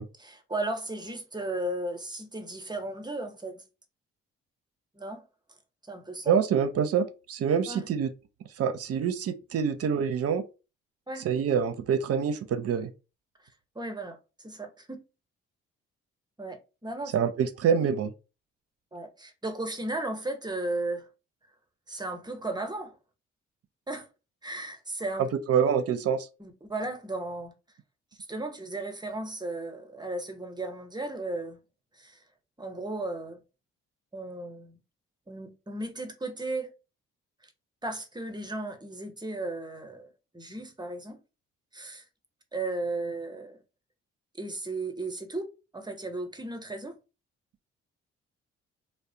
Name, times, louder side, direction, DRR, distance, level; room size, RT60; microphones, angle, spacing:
voice 1, 0.2-3.6 4.9-5.2 5.9-6.3 7.7-7.9 11.1-11.3 13.7-14.2 14.4-15.0 16.4-17.1 18.9-21.1 21.9-22.9 23.9-24.1 24.4-25.3 26.4-27.5 28.3-31.6 31.9-32.2 32.6-33.4 34.1-34.8 35.3-36.7 37.4-37.5 37.8-41.2 41.7-42.1 42.5-43.6 44.4-45.5 45.7-47.0, right 2 dB, 15° right, 0.8 m, -35 dB
voice 2, 6.3-8.1 8.6-10.4 11.2-12.9 17.1-18.1 25.3-26.3, right 7 dB, 55° right, 0.5 m, -26 dB
2.3 x 2.0 x 2.7 m
hypercardioid pair, 50°, 30 cm